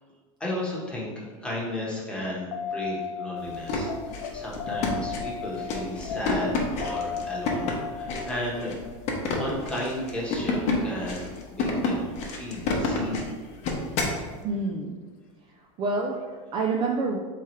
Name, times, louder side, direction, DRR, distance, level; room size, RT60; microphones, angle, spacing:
voice 1, 0.4-8.7 9.3-13.3, left 1 dB, 5° left, -5 dB, 1.0 m, -34 dB
sound 1, 2.5-10.9 13.6-13.7, left 6 dB, 90° left, 0.5 m, -36 dB
sound 2, 3.5-14.2, left 3 dB, 40° left, 0.8 m, -30 dB
voice 2, 14.4-15.0 15.5-17.2, right 3 dB, 30° right, 0 dB, 0.4 m, -28 dB
3.5 x 3.1 x 4.3 m, 1.4 s
supercardioid pair, 145°, 17 cm